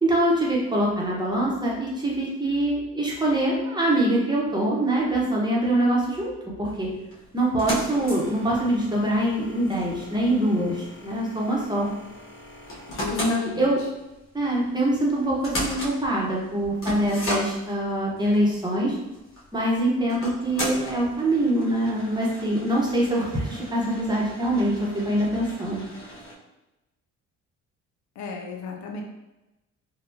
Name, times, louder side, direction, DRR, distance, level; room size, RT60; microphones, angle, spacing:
voice 1, 0.0-6.3 6.6-6.9 7.3-11.9 13.1-13.8 14.3-19.0 19.5-25.8, right 1 dB, 15° right, -4 dB, 0.9 m, -24 dB
sound 1, 6.6-26.3, equal, 45° left, 1.1 m, -37 dB
voice 2, 12.9-13.7 28.2-29.0, left 4 dB, 65° left, 1 dB, 0.6 m, -34 dB
3.5 x 2.3 x 2.7 m, 0.99 s
cardioid pair, 90°, 30 cm